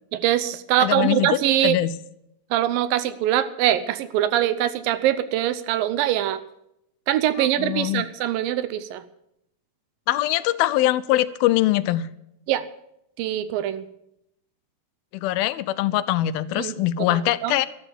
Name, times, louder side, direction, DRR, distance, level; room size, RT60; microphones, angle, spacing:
voice 1, 0.1-1.8 2.5-6.4 7.1-9.0 12.5-12.7 13.2-13.9 16.6-17.6, right 12 dB, 80° right, 14 dB, 2.4 m, -23 dB
voice 2, 0.8-1.3 1.6-1.9 7.4-8.1 10.1-12.1 15.1-17.7, left 15 dB, 85° left, 14 dB, 2.5 m, -22 dB
13.0 x 12.0 x 7.2 m, 0.80 s
omnidirectional pair, 4.2 m